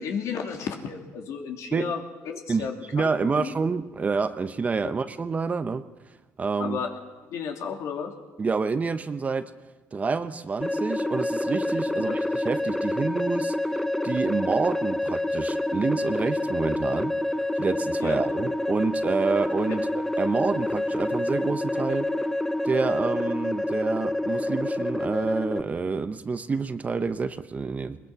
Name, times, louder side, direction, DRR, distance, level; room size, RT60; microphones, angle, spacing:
voice 1, 0.0-3.5 6.6-6.9 7.3-8.1 12.1-12.2 18.0-18.2 19.7-19.8, left 6 dB, 65° left, 3 dB, 2.9 m, -33 dB
voice 2, 2.5-5.8 6.4-6.8 8.4-9.5 9.9-13.5 14.0-17.1 17.6-22.1 22.6-28.0, right 4 dB, 25° right, 11 dB, 0.9 m, -28 dB
sound 1, 10.6-25.6, left 1 dB, 5° left, 0.9 m, -27 dB
21.0 x 20.5 x 6.0 m, 1.2 s
cardioid pair, 100°, 5 cm